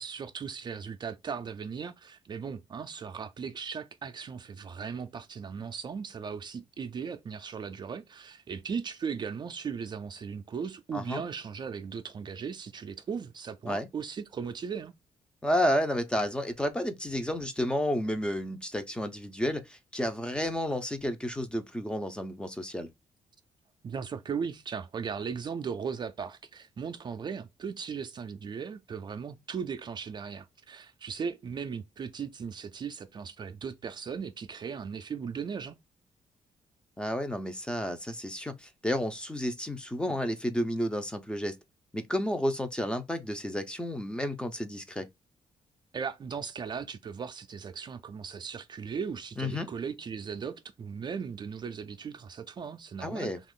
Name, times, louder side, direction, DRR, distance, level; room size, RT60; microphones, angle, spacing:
voice 1, 0.0-14.9 23.8-35.8 45.9-53.3, right 6 dB, 40° right, 0.4 m, -37 dB
voice 2, 10.9-11.2 13.7-13.9 15.4-22.9 37.0-41.6 41.9-45.1 49.4-49.7 53.0-53.4, equal, 10° left, 0.5 m, -31 dB
2.9 x 2.4 x 3.6 m
cardioid pair, 115°, 12 cm